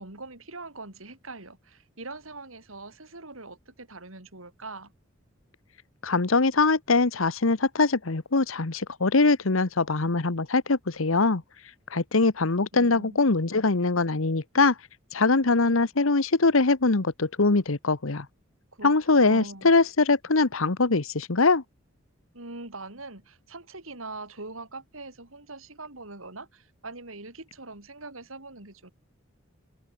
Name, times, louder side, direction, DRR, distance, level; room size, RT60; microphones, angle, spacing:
voice 1, 0.0-4.9 12.7-13.2 18.7-19.7 22.3-28.9, right 3 dB, 85° right, 5.6 m, -42 dB
voice 2, 6.0-11.4 11.9-14.7 15.1-18.3 18.8-21.6, left 3 dB, 85° left, 1.2 m, -22 dB
head